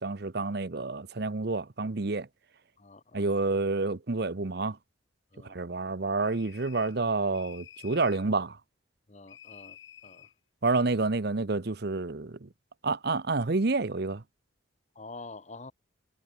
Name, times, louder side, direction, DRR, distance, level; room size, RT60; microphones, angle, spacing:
voice 1, 0.0-2.3 3.1-4.8 5.4-8.6 10.6-12.5 12.8-14.2, right 3 dB, 50° right, 0.8 m, -29 dB
voice 2, 2.8-3.2 5.3-5.6 9.1-9.8 10.0-10.3 14.9-15.7, left 3 dB, 35° left, 1.0 m, -46 dB
sound 1, 6.2-7.0 7.3-8.3 9.3-10.3, left 9 dB, 70° left, 6.1 m, -51 dB
head